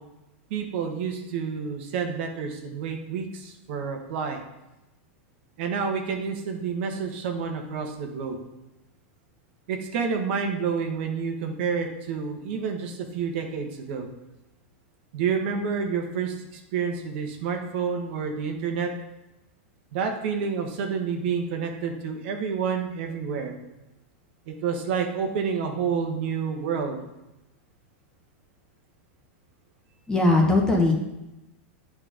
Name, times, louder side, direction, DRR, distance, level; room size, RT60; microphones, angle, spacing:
voice 1, 0.5-4.4 5.6-8.4 9.7-14.1 15.1-18.9 19.9-23.6 24.5-27.0, right 6 dB, 60° right, 4 dB, 1.3 m, -29 dB
voice 2, 30.1-30.9, left 2 dB, 10° left, 0 dB, 1.2 m, -19 dB
8.6 x 4.4 x 5.1 m, 0.96 s
supercardioid pair, 140°, 7 cm